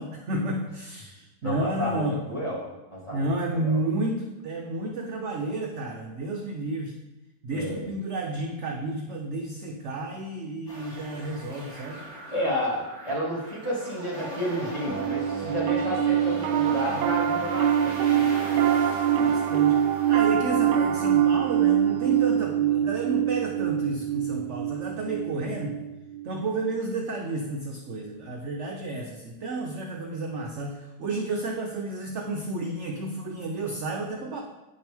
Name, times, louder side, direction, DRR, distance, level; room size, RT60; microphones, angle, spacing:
voice 1, 0.0-2.2 3.1-6.9 7.4-12.0 18.5-19.8 20.1-25.7 26.2-34.4, right 2 dB, 60° right, 1 dB, 0.8 m, -31 dB
voice 2, 1.4-2.6 2.9-3.8 7.5-7.9 12.3-18.3, equal, 15° left, -5 dB, 2.0 m, -31 dB
sound 1, 10.7-22.4, equal, 65° left, 2.8 m, -40 dB
Piano, 14.9-26.4, right 10 dB, 75° right, 1.2 m, -24 dB
9.0 x 6.1 x 3.5 m, 1.0 s
omnidirectional pair, 2.0 m